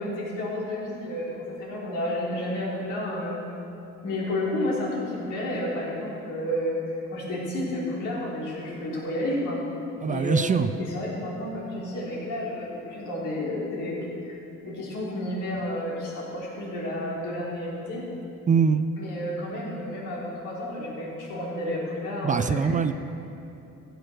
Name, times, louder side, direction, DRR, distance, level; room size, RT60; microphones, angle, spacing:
voice 1, 0.0-3.4 4.0-9.6 10.0-14.4 14.6-18.0 19.0-22.7, left 1 dB, 85° left, -5 dB, 3.7 m, -31 dB
voice 2, 10.0-10.7 18.5-18.9 22.2-22.9, right 6 dB, 25° right, 12 dB, 0.4 m, -22 dB
15.0 x 8.0 x 6.5 m, 2.8 s
cardioid pair, 125°, 30 cm